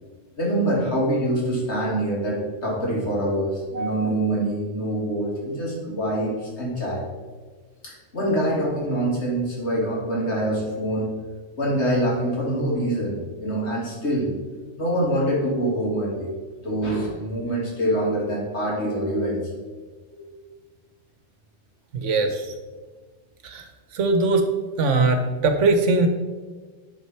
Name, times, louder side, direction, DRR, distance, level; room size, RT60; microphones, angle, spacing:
voice 1, 0.4-7.0 7.8-11.1 11.6-14.3 14.8-16.3 16.6-19.4 20.1-20.4, right 1 dB, 60° left, -4 dB, 2.5 m, -25 dB
voice 2, 3.7-4.1 21.9-22.5 23.4-23.6 23.9-24.4 24.8-26.1, right 3 dB, 75° right, 6 dB, 1.2 m, -21 dB
10.0 x 4.2 x 4.4 m, 1.4 s
omnidirectional pair, 1.3 m